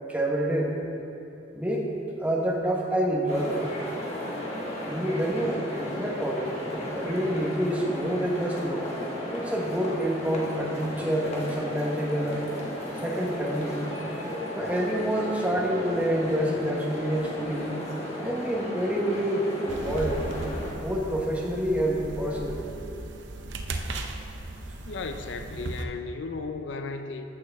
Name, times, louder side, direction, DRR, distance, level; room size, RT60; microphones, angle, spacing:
voice 1, 0.1-0.8 1.5-1.9 2.2-3.7 4.9-8.9 9.3-12.4 12.9-13.8 14.6-17.7 18.2-20.3 20.7-22.7, right 1 dB, 10° right, -2 dB, 1.1 m, -27 dB
sound 1, 3.3-20.7, left 1 dB, 35° left, 1.3 m, -35 dB
sound 2, 19.7-25.8, right 2 dB, 70° right, 0.6 m, -37 dB
voice 2, 24.8-27.3, left 4 dB, 75° left, 7 dB, 0.5 m, -35 dB
14.0 x 6.2 x 3.5 m, 2.9 s
head